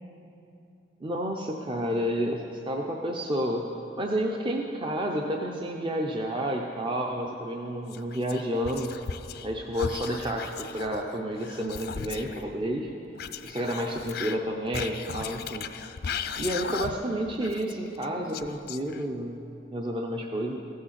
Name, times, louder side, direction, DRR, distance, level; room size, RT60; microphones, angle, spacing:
voice 1, 1.0-3.7 3.9-9.0 9.4-12.9 13.4-15.7 16.4-19.4 19.7-20.6, equal, 25° right, 1 dB, 0.5 m, -30 dB
Whispering, 7.9-9.5 9.7-12.4 13.2-17.1 17.4-19.2, left 6 dB, 50° left, 0.4 m, -37 dB
15.0 x 6.5 x 7.4 m, 2.8 s
head